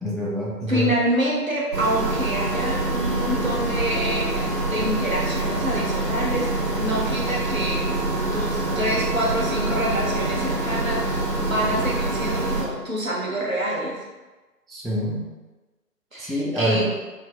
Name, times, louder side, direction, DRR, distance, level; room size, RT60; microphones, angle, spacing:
voice 1, 0.0-1.0 14.7-15.2 16.2-16.9, right 1 dB, ahead, -4 dB, 0.3 m, -26 dB
voice 2, 0.7-7.9 8.3-14.0 16.1-16.9, equal, 55° right, -3 dB, 0.6 m, -27 dB
sound 1, 1.7-12.6, right 2 dB, 80° right, 0.9 m, -25 dB
2.5 x 2.3 x 2.5 m, 1.2 s
figure-of-eight pair, 175°, 49 cm